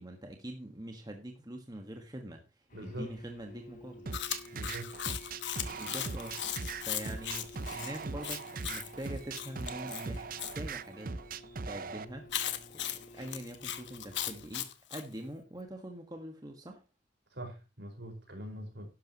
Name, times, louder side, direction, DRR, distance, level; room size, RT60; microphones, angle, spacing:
voice 1, 0.0-2.4 2.8-4.1 5.8-6.4 6.8-11.1 11.7-12.3 12.7-16.8, right 1 dB, 20° right, 4 dB, 1.5 m, -44 dB
sound 1, 2.7-14.4, equal, 45° left, 4.1 m, -53 dB
voice 2, 2.7-3.1 4.5-4.9 17.3-18.9, equal, 70° right, 3 dB, 4.9 m, -42 dB
sound 2, 4.0-12.0, right 4 dB, 50° right, 0.7 m, -40 dB
Chewing mastication, 4.1-10.6 12.3-15.1, left 11 dB, 80° left, 1.2 m, -38 dB
11.5 x 11.5 x 3.0 m, 0.29 s
head